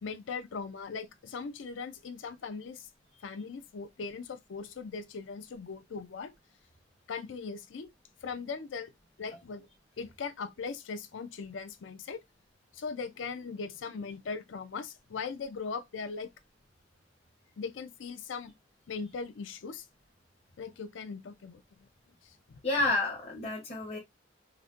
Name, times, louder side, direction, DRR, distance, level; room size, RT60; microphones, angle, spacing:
voice 1, 0.0-2.9 3.2-6.3 7.1-7.9 8.2-8.9 9.2-9.7 10.0-12.2 12.7-16.3 17.6-18.5 18.9-19.9 20.6-21.9 22.2-22.9, left 5 dB, 85° left, 0.5 m, -39 dB
voice 2, 22.6-24.0, left 2 dB, 35° left, 0.8 m, -30 dB
4.0 x 2.1 x 2.4 m
head